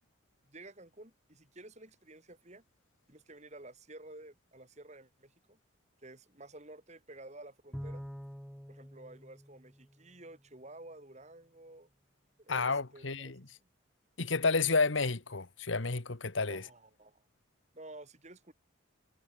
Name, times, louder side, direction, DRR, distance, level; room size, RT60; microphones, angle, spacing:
voice 1, 0.4-2.6 3.1-5.6 6.0-8.1 8.7-11.9 12.4-13.3 13.6-13.7 16.5-17.3 17.7-18.5, right 2 dB, 35° right, 4.0 m, -52 dB
Bowed string instrument, 7.7-10.4, equal, ahead, 1.2 m, -46 dB
voice 2, 12.5-13.4 14.2-16.6, left 4 dB, 75° left, 1.5 m, -30 dB
head